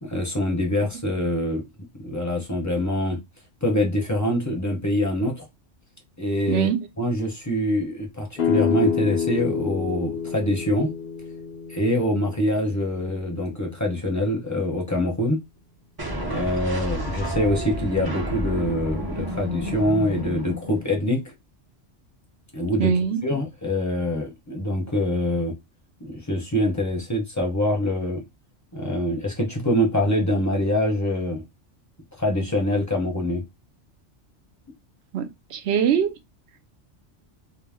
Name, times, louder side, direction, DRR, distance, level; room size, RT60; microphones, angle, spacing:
voice 1, 0.0-1.6 2.0-3.2 3.6-5.4 6.2-6.7 7.0-10.9 11.7-15.4 16.2-21.2 22.5-22.9 23.2-25.5 26.0-28.2 28.7-31.4 32.2-33.4, left 1 dB, 15° left, 0.7 m, -24 dB
voice 2, 6.5-6.8 22.8-23.2 35.1-36.1, right 8 dB, 70° right, 0.8 m, -22 dB
sound 1, 8.4-13.9, left 8 dB, 55° left, 0.8 m, -28 dB
sound 2, 16.0-21.1, right 1 dB, 30° right, 0.5 m, -30 dB
2.6 x 2.1 x 3.4 m
omnidirectional pair, 1.2 m